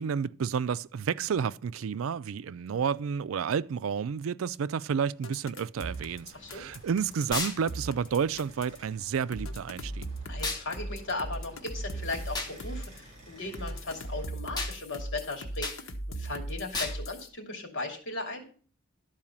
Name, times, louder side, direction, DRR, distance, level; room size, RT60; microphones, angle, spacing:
voice 1, 0.0-10.1, right 6 dB, 80° right, 0.4 m, -30 dB
sound 1, 5.2-8.8 9.3-13.0 13.5-17.3, right 1 dB, 80° left, 1.2 m, -38 dB
sound 2, 5.7-14.3, right 1 dB, 35° right, 3.8 m, -53 dB
voice 2, 6.3-6.6 10.3-18.4, left 2 dB, 65° left, 2.8 m, -37 dB
sound 3, 7.3-7.6 10.4-10.7 12.3-12.5 14.6-14.8 15.6-15.8 16.7-17.0, left 3 dB, 20° left, 1.4 m, -32 dB
12.5 x 4.7 x 7.3 m
head